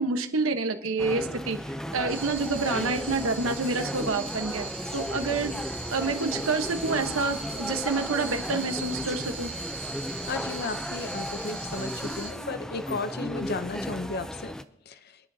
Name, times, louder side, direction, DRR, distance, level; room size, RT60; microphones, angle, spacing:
voice 1, 0.0-1.6 1.9-4.7 4.9-5.5 5.9-9.5, right 3 dB, 90° right, 7 dB, 1.1 m, -28 dB
sound 1, 1.0-14.6, equal, 5° left, 0.5 m, -35 dB
sound 2, 2.1-12.3, right 3 dB, 15° right, 6.3 m, -39 dB
voice 2, 10.3-14.6 14.9-15.0, left 3 dB, 50° left, 11 dB, 0.7 m, -34 dB
27.5 x 10.0 x 2.8 m, 0.78 s
head